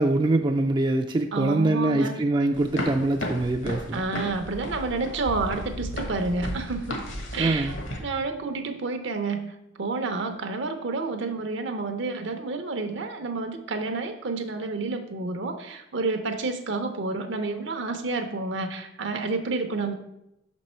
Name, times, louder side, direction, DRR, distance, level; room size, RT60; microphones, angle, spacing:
voice 1, 0.0-4.0 7.4-7.8, right 2 dB, 25° right, 4 dB, 0.3 m, -24 dB
voice 2, 1.3-2.2 3.9-7.0 7.3-19.9, right 3 dB, 65° right, 6 dB, 0.6 m, -29 dB
sound 1, 2.5-8.0, equal, 70° left, 1.4 m, -34 dB
6.0 x 5.3 x 4.3 m, 0.84 s
head